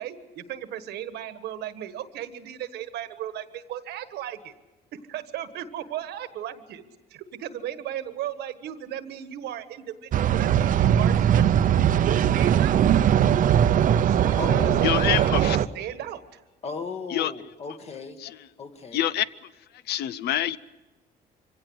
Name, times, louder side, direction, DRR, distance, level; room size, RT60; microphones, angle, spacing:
voice 1, 0.0-4.5 5.1-6.8 7.1-11.7 12.0-12.9 14.0-16.4, right 11 dB, 75° right, 11 dB, 1.4 m, -36 dB
sound 1, 10.1-15.7, right 10 dB, 50° right, 0.7 m, -20 dB
voice 2, 14.3-15.1 16.6-18.2 18.6-19.1, left 5 dB, 40° left, 7 dB, 1.8 m, -35 dB
voice 3, 14.8-15.6 17.1-17.3 18.2-18.4 18.9-19.3 19.9-20.6, left 12 dB, 75° left, 17 dB, 0.6 m, -25 dB
24.5 x 17.0 x 8.0 m, 1.2 s
cardioid pair, 110°, 17 cm